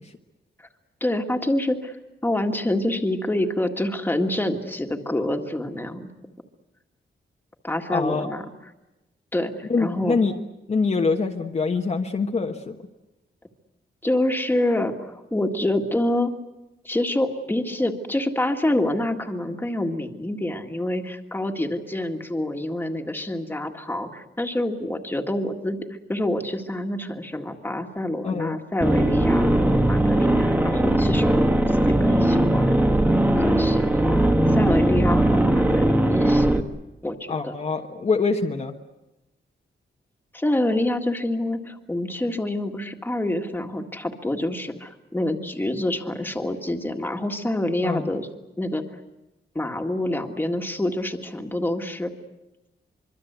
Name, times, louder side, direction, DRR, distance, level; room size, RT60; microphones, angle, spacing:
voice 1, 1.0-2.0 2.2-6.1 7.6-8.5 9.3-10.2 14.0-16.3 16.8-25.8 26.1-32.8 33.4-36.6 37.0-37.5 40.3-48.3 48.6-48.8 49.6-52.1, left 1 dB, 10° left, 4 dB, 1.9 m, -27 dB
voice 2, 7.9-8.3 9.7-10.3 10.7-12.8 28.2-28.6 37.3-38.7 47.8-48.1, left 4 dB, 35° left, 2 dB, 1.3 m, -24 dB
sound 1, 28.8-36.6, right 1 dB, 10° right, 1.3 m, -19 dB
25.0 x 24.0 x 8.2 m, 0.98 s
wide cardioid pair, 160°, 19 cm